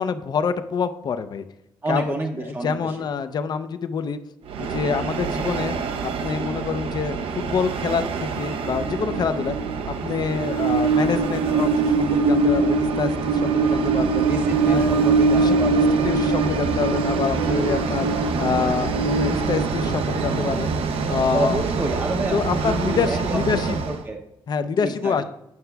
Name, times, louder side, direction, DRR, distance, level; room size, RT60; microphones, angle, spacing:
voice 1, 0.0-1.4 1.9-4.2 4.6-5.8 6.0-9.5 10.0-14.3 14.7-18.1 18.4-20.7 21.1-21.6 22.3-23.8 24.5-25.2, left 6 dB, 50° left, 10 dB, 0.4 m, -26 dB
voice 2, 1.8-3.1 14.2-16.0 21.3-24.2 24.8-25.2, right 2 dB, 25° right, 2 dB, 0.6 m, -29 dB
Train, 4.5-24.0, right 4 dB, 75° right, 0.6 m, -23 dB
9.5 x 5.7 x 2.3 m, 0.83 s
cardioid pair, 80°, 9 cm